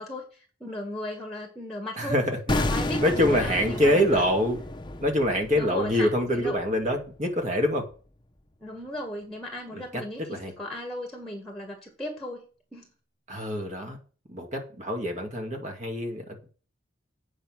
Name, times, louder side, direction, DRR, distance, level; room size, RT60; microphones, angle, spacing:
voice 1, 0.0-2.2 2.5-4.0 5.5-6.1 6.3-6.6 8.6-12.4 12.7-12.9, left 1 dB, ahead, 3 dB, 1.8 m, -36 dB
voice 2, 2.0-2.6 3.0-4.6 5.0-7.8 9.7-10.0 10.3-10.5 13.3-14.0 14.3-16.5, equal, 40° right, 3 dB, 2.3 m, -25 dB
sound 1, 2.5-7.5 7.8-7.9, left 1 dB, 25° left, 0.8 m, -32 dB
8.8 x 5.3 x 6.2 m, 0.39 s
head